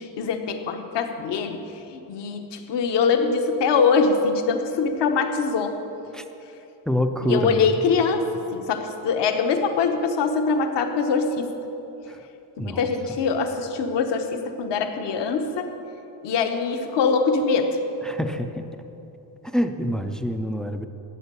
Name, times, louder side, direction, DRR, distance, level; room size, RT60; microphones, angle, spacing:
voice 1, 0.0-5.8 7.2-8.3 8.5-11.5 12.6-15.7 16.2-17.8, left 5 dB, 60° left, 6 dB, 1.1 m, -23 dB
voice 2, 6.9-7.9 12.1-12.2 12.6-12.9 18.0-18.6 19.5-20.9, equal, ahead, 7 dB, 0.3 m, -26 dB
12.5 x 8.8 x 6.9 m, 3.0 s
cardioid pair, 140°, 48 cm